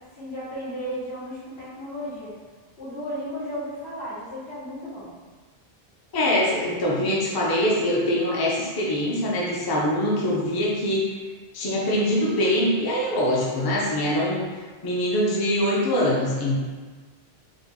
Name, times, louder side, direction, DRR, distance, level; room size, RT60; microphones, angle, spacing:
voice 1, 0.1-2.3 2.8-5.1, equal, 85° left, -11 dB, 1.8 m, -34 dB
voice 2, 6.1-11.0 11.5-14.5 14.8-16.6, left 1 dB, 30° left, -4 dB, 0.5 m, -23 dB
3.6 x 2.3 x 3.5 m, 1.4 s
omnidirectional pair, 1.1 m